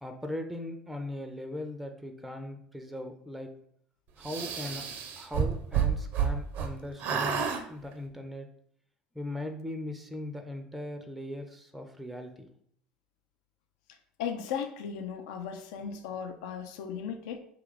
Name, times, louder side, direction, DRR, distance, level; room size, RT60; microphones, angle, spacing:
voice 1, 0.0-3.5 4.2-4.8 5.2-8.5 9.1-12.5, left 1 dB, ahead, 5 dB, 0.4 m, -39 dB
sound 1, 4.2-6.7 7.0-7.6, right 7 dB, 60° right, 0.4 m, -29 dB
voice 2, 14.2-17.4, left 7 dB, 75° left, 7 dB, 0.3 m, -36 dB
2.8 x 2.3 x 3.7 m, 0.67 s
hypercardioid pair, 70°, 4 cm